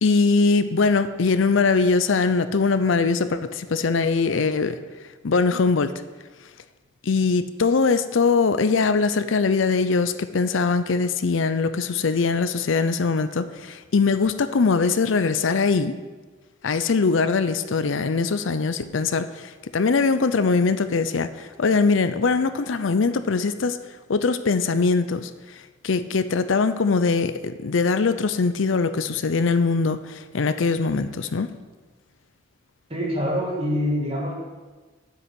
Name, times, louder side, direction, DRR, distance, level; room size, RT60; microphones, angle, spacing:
voice 1, 0.0-4.8 5.2-6.0 7.0-16.0 16.6-23.8 24.1-25.3 25.8-31.5, left 4 dB, 75° left, 12 dB, 0.5 m, -22 dB
voice 2, 32.9-34.3, equal, 30° right, -2 dB, 2.0 m, -25 dB
7.7 x 6.6 x 7.9 m, 1.3 s
head